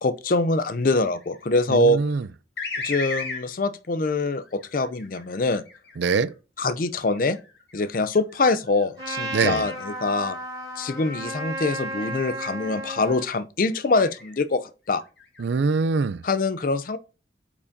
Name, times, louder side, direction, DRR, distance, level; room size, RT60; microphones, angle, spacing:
voice 1, 0.0-2.0 2.8-5.6 6.6-7.4 7.7-10.4 10.8-15.0 16.2-17.0, left 2 dB, 50° left, 0.5 m, -24 dB
sound 1, 0.8-1.5 2.6-3.5 4.4-6.3 7.0-10.3 10.7-11.1 12.0-12.9 13.7-14.4 14.9-15.8, left 4 dB, 65° left, 1.9 m, -38 dB
voice 2, 1.7-2.3 6.0-6.3 9.3-9.6 15.4-16.2, right 4 dB, 75° right, 0.4 m, -23 dB
Trumpet, 9.0-13.3, right 1 dB, 20° right, 4.0 m, -33 dB
8.5 x 4.9 x 2.6 m
head